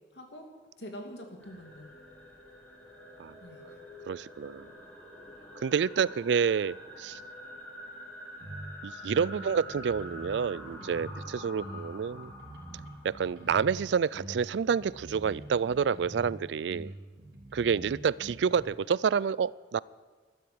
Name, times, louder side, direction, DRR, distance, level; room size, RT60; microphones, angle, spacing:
voice 1, 0.1-0.5 0.8-2.0 3.4-3.8 9.3-9.5 18.2-18.3, equal, 80° left, 3 dB, 2.7 m, -45 dB
sound 1, 1.4-14.5, equal, 10° left, 4.5 m, -47 dB
voice 2, 4.1-4.7 5.6-7.2 8.8-12.3 13.0-16.9 17.5-19.8, right 6 dB, 85° right, 22 dB, 0.4 m, -28 dB
sound 2, 8.4-8.7 9.0-11.2 11.6-13.8 14.1-16.3 16.7-18.6, right 1 dB, 70° right, 3.6 m, -45 dB
12.5 x 12.5 x 8.6 m, 1.4 s
head